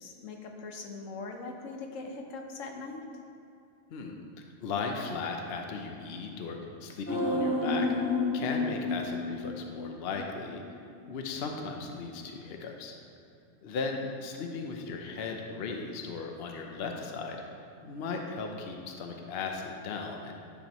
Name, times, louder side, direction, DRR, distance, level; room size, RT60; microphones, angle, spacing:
voice 1, 0.0-3.2, left 3 dB, 80° left, 3 dB, 1.1 m, -41 dB
voice 2, 4.6-7.9 8.3-10.6 11.1-12.9 13.6-17.4 17.8-20.3, left 4 dB, 55° left, 2 dB, 0.9 m, -36 dB
sound 1, 7.1-10.3 10.6-10.7, left 3 dB, 10° left, 1.0 m, -30 dB
10.0 x 6.2 x 3.0 m, 2.7 s
omnidirectional pair, 1.3 m